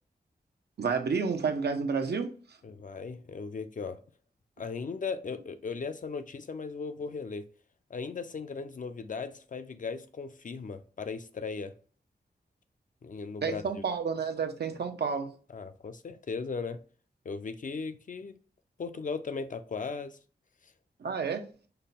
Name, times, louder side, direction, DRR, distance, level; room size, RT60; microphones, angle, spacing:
voice 1, 0.8-2.3 13.4-15.3 21.0-21.5, right 5 dB, 75° right, 0.7 m, -30 dB
voice 2, 2.6-4.0 4.6-7.4 7.9-11.8 13.0-13.8 15.5-16.8 17.2-18.4 18.8-20.2, left 5 dB, 50° left, 0.5 m, -37 dB
5.5 x 2.2 x 4.0 m
wide cardioid pair, 125°, 17 cm